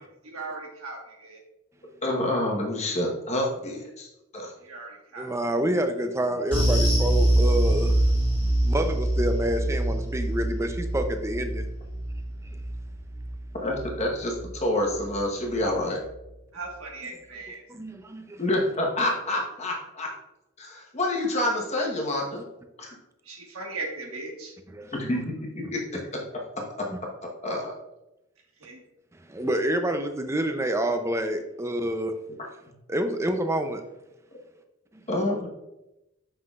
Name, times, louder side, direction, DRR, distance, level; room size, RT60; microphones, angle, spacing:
voice 1, 0.0-1.4 4.6-5.3 16.5-17.6 23.2-24.5 28.6-28.8, right 3 dB, 85° right, 1 dB, 1.3 m, -38 dB
voice 2, 2.0-4.1 4.3-4.5 13.6-16.0 18.4-20.1 20.6-22.4 22.8-23.0 24.9-25.8 27.4-27.7 35.1-35.5, left 1 dB, 30° left, -1 dB, 1.1 m, -27 dB
voice 3, 5.2-7.9 8.6-11.7 12.4-12.6 17.7-18.4 24.7-25.2 26.9-27.0 29.3-32.2 32.9-33.8 34.9-35.0, right 1 dB, 15° right, 7 dB, 0.4 m, -28 dB
sound 1, 6.5-15.2 15.5-15.7 16.1-16.2, right 1 dB, 5° left, 2.0 m, -25 dB
7.4 x 5.7 x 2.4 m, 0.93 s
head